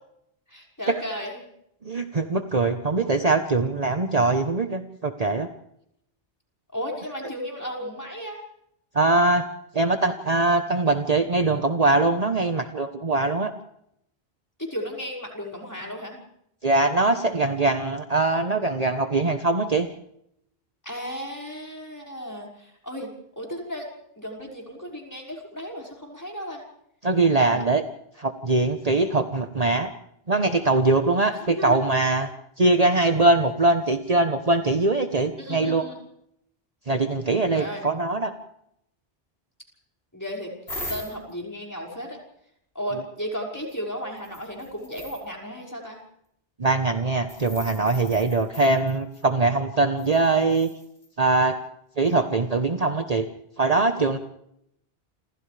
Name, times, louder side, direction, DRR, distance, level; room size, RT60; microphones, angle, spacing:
voice 1, 0.5-1.4 6.7-8.4 14.6-16.2 20.8-23.1 23.4-23.9 24.2-26.6 27.3-27.6 31.3-31.8 35.4-36.0 37.5-37.9 40.1-40.5 40.9-42.2 42.7-46.0, equal, 15° left, -1 dB, 5.8 m, -34 dB
voice 2, 1.8-5.5 8.9-9.4 9.7-13.5 16.6-19.9 27.0-27.8 28.2-29.9 30.3-32.3 32.6-35.9 36.9-38.3 46.6-50.7 51.2-51.6 52.0-53.3 53.6-54.2, right 2 dB, 40° right, 6 dB, 1.2 m, -22 dB
sound 1, 40.7-41.3 43.7-43.8 44.2-45.3 47.3-49.2 50.0-51.1 52.1-52.2, left 1 dB, 75° left, 7.3 m, -40 dB
29.0 x 27.0 x 3.4 m, 0.76 s
omnidirectional pair, 1.1 m